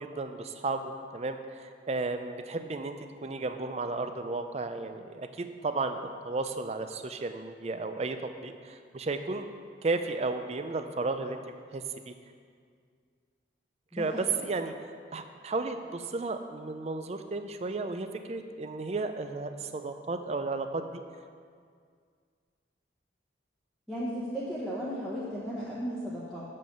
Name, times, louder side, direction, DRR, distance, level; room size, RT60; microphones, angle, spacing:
voice 1, 0.0-3.0 3.2-9.5 9.8-12.1 13.9-21.0, right 3 dB, 35° right, 8 dB, 0.4 m, -34 dB
voice 2, 13.9-14.5 23.9-26.4, equal, ahead, -9 dB, 1.0 m, -35 dB
7.3 x 5.3 x 6.7 m, 2.1 s
head